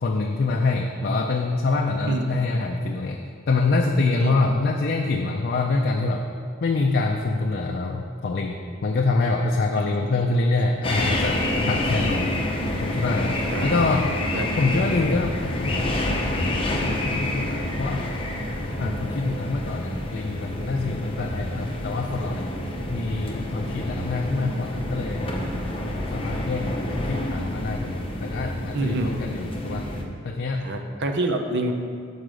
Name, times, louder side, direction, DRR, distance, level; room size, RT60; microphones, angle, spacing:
voice 1, 0.0-3.2 3.5-6.2 6.6-12.3 12.8-14.1 14.6-18.1 18.8-22.5 22.9-25.3 26.1-29.9 30.2-30.7, left 3 dB, 50° left, 2 dB, 0.4 m, -25 dB
voice 2, 9.8-10.1 13.3-13.9 14.3-14.5 18.8-19.1 22.1-22.3 28.7-29.2 30.6-31.7, right 2 dB, 55° right, 4 dB, 0.7 m, -28 dB
sound 1, 10.8-30.0, left 1 dB, 25° left, 0.8 m, -28 dB
6.6 x 4.8 x 6.2 m, 2.2 s
head